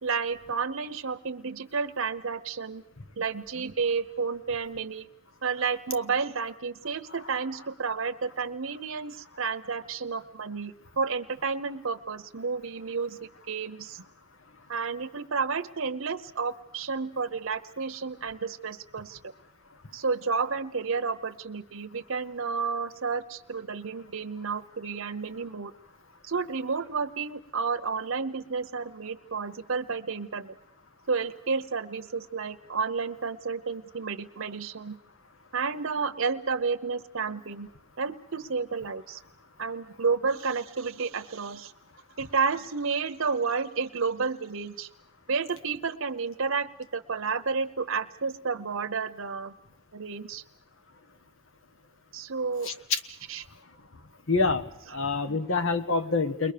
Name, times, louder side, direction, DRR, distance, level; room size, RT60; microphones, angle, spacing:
voice 1, 0.0-2.8 3.2-5.1 5.4-13.2 13.5-14.0 14.7-19.3 19.9-25.7 26.2-30.6 31.1-35.0 35.5-37.7 38.0-39.2 39.6-41.7 42.2-44.9 45.3-49.5 49.9-50.4 52.1-52.7 53.3-53.5 54.9-55.0 55.3-55.4, right 5 dB, 70° right, 6 dB, 0.9 m, -31 dB
voice 2, 54.3-54.6 54.9-56.5, left 4 dB, 65° left, 9 dB, 1.5 m, -26 dB
29.5 x 21.5 x 6.8 m, 0.82 s
head